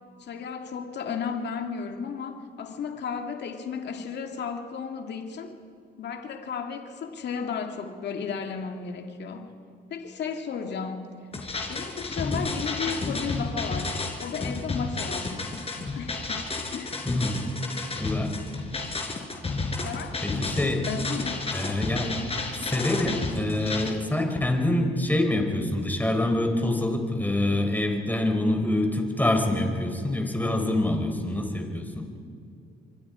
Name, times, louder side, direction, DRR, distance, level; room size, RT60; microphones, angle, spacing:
voice 1, 0.2-5.5 6.0-9.5 9.9-11.1 11.7-15.5 15.9-17.0 19.8-21.5, left 6 dB, 65° left, 4 dB, 2.3 m, -34 dB
sound 1, 11.3-23.9, left 3 dB, 30° left, 4.3 m, -32 dB
voice 2, 17.0-17.5 18.0-18.4 20.2-20.8 21.5-22.1 22.7-32.1, left 1 dB, 10° left, 3 dB, 4.0 m, -26 dB
27.5 x 24.0 x 5.0 m, 2.5 s
cardioid pair, 95°, 19 cm